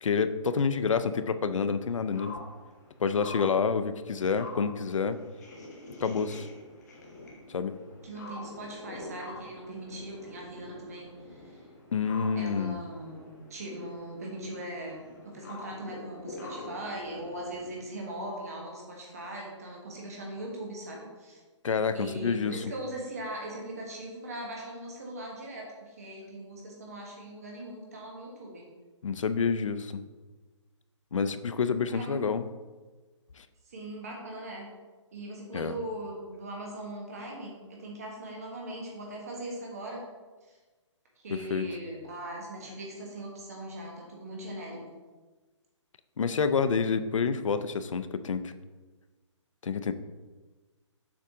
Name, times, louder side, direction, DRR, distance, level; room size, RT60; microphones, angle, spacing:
voice 1, 0.0-2.4 3.0-5.2 6.0-6.5 7.5-7.7 11.9-12.8 21.6-22.6 29.0-30.0 31.1-32.5 33.4-33.5 35.5-35.8 41.3-41.6 46.2-48.5 49.6-49.9, left 5 dB, 80° left, 11 dB, 0.5 m, -28 dB
sound 1, 1.6-17.8, left 2 dB, 35° left, 1.3 m, -46 dB
voice 2, 8.0-11.6 12.3-21.4 21.9-28.6 31.9-32.3 33.6-34.7 35.1-40.0 40.5-40.6 41.2-44.8, right 1 dB, 30° right, -1 dB, 1.4 m, -40 dB
7.3 x 4.8 x 3.6 m, 1.3 s
hypercardioid pair, 180°, 16 cm